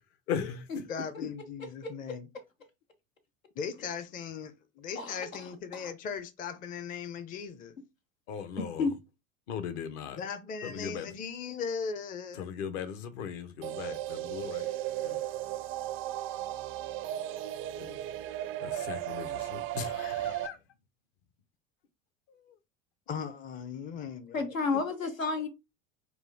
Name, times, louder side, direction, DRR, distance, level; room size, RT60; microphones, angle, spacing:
voice 1, 0.3-1.1 8.3-8.9 9.5-10.2 10.6-11.1 12.3-14.7 15.0-15.3 17.8-18.0 18.6-20.6, left 7 dB, 55° left, 1.0 m, -38 dB
voice 2, 0.9-2.3 3.6-4.5 4.8-7.7 10.2-12.5 23.1-24.5, left 6 dB, 20° left, 0.5 m, -38 dB
voice 3, 4.9-5.9 8.6-8.9 24.3-25.5, left 4 dB, 85° left, 1.0 m, -32 dB
sound 1, 13.6-20.5, right 13 dB, 35° right, 0.4 m, -35 dB
4.4 x 2.5 x 3.4 m
figure-of-eight pair, 80°, 39 cm